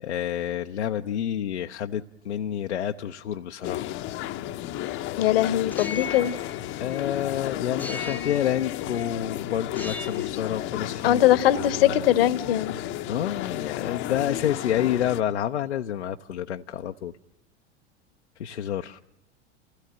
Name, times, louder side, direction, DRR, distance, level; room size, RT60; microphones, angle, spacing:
voice 1, 0.0-4.0 6.8-11.2 11.6-12.0 13.1-17.1 18.4-19.0, left 10 dB, 70° left, 4 dB, 0.8 m, -29 dB
sound 1, 3.6-15.2, left 13 dB, 35° left, 0.9 m, -33 dB
voice 2, 5.2-6.3 11.0-12.7, left 12 dB, 55° left, 18 dB, 1.2 m, -21 dB
sound 2, 5.6-7.2 7.8-9.1 9.7-10.4, left 4 dB, 5° left, 1.0 m, -38 dB
28.0 x 16.5 x 8.9 m, 0.90 s
figure-of-eight pair, 85°, 35 cm